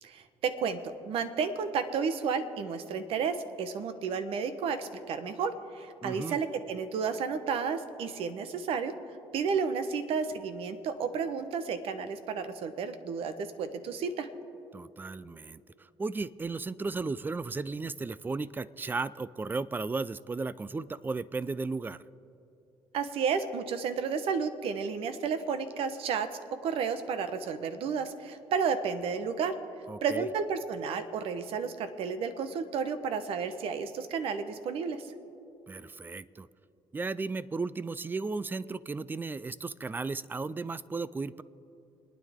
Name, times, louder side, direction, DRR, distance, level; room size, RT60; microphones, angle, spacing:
voice 1, 0.0-8.9 9.3-14.3 22.9-26.3 26.6-29.5 30.0-35.1, right 6 dB, 70° right, 10 dB, 1.1 m, -32 dB
voice 2, 6.0-6.4 14.7-22.0 29.9-30.3 35.7-36.5 36.9-41.4, right 3 dB, 20° right, 19 dB, 0.4 m, -35 dB
28.5 x 9.7 x 3.6 m, 2.9 s
cardioid pair, 90°, 10 cm